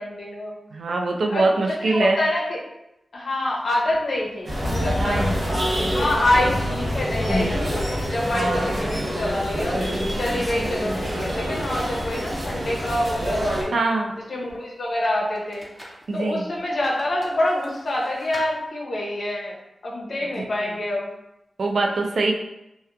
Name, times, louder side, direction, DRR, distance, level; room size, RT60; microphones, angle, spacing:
voice 1, 0.0-0.6 1.3-2.6 3.1-5.5 5.9-9.8 10.1-13.8 14.3-15.7 16.1-19.5 19.8-21.1, left 1 dB, 60° left, -3 dB, 0.6 m, -26 dB
voice 2, 0.7-2.2 5.0-5.3 8.4-8.8 13.7-14.1 16.1-16.5 20.4-20.6 21.6-22.3, right 3 dB, 75° right, 2 dB, 0.3 m, -23 dB
sound 1, 3.9-4.3 4.7-6.8 7.3-7.6 8.0-9.0 9.7-11.5 11.8-11.9 15.4-16.0 16.9-18.5, equal, 5° right, 0.4 m, -33 dB
sound 2, 4.4-13.6, equal, 50° right, 0.7 m, -26 dB
2.8 x 2.1 x 2.4 m, 0.89 s
wide cardioid pair, 135°, 0 cm